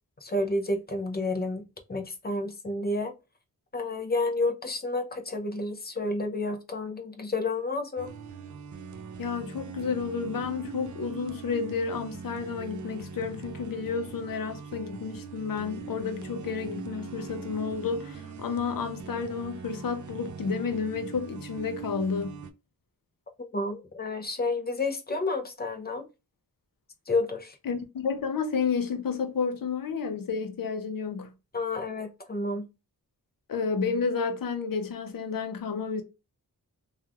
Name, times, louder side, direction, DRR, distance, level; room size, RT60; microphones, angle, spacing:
voice 1, 0.2-3.1 3.7-8.1 23.4-26.0 27.1-27.5 31.5-32.7, left 2 dB, 25° left, 0.6 m, -30 dB
sound 1, 8.0-22.5, right 6 dB, 55° right, 0.4 m, -42 dB
voice 2, 9.2-22.4 27.7-31.3 33.5-36.0, left 5 dB, 70° left, 0.7 m, -31 dB
3.0 x 2.4 x 2.3 m
wide cardioid pair, 120°, 36 cm